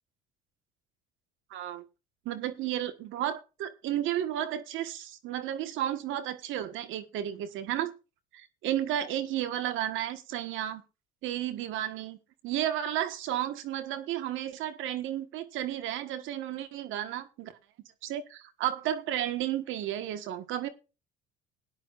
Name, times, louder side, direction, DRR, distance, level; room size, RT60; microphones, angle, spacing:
voice 1, 1.5-1.8 2.2-7.9 8.3-10.8 11.2-12.2 12.4-17.5 18.0-20.7, right 11 dB, 70° right, 1.5 m, -33 dB
18.0 x 10.5 x 2.5 m
supercardioid pair, 85°, 21 cm